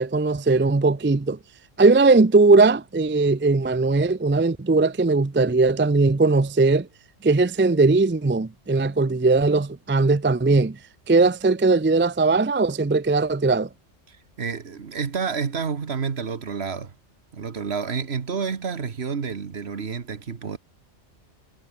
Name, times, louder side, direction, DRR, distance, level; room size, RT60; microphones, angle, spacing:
voice 1, 0.0-1.4 1.8-6.9 7.2-10.8 11.1-13.7, right 3 dB, 20° right, 0.3 m, -19 dB
voice 2, 14.1-16.9 17.3-20.6, right 5 dB, 60° right, 1.6 m, -29 dB
omnidirectional pair, 1.3 m